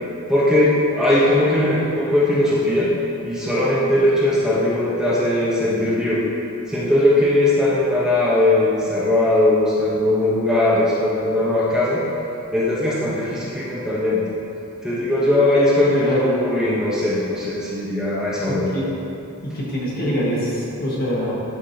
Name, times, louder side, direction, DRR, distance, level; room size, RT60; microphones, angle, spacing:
voice 1, 0.3-2.9 3.2-6.2 6.7-12.0 12.5-14.2 14.8-18.7, left 1 dB, 5° right, -9 dB, 0.9 m, -19 dB
voice 2, 15.9-16.4 18.5-18.9 19.4-21.3, equal, 45° left, -6 dB, 1.5 m, -24 dB
11.5 x 4.8 x 2.8 m, 2.9 s
head